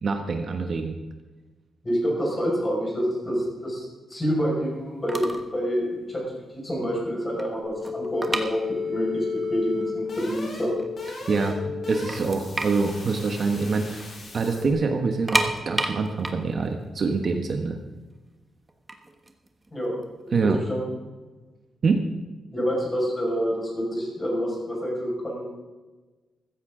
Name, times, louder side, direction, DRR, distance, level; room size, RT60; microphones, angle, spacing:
voice 1, 0.0-1.0 11.3-14.1 14.3-17.8 20.3-20.6 21.8-22.0, right 4 dB, 40° right, 4 dB, 1.1 m, -25 dB
voice 2, 1.8-3.8 4.1-6.2 6.5-8.6 8.9-9.2 9.5-10.7 19.7-19.9 20.3-20.9 22.5-25.5, equal, 20° left, -3 dB, 5.4 m, -27 dB
sound 1, 4.8-4.9 5.1-5.5 5.8-6.0 6.5-6.6 6.9-9.2 9.4-9.5 10.2-10.3 10.6-11.4 11.7-11.8 12.1-14.1 14.3-14.5 15.0-18.0 18.7-20.4, right 2 dB, 15° right, 1.2 m, -30 dB
sound 2, 7.6-14.7, left 5 dB, 45° left, 4.7 m, -33 dB
15.0 x 15.0 x 3.8 m, 1.2 s
wide cardioid pair, 165°, 0 cm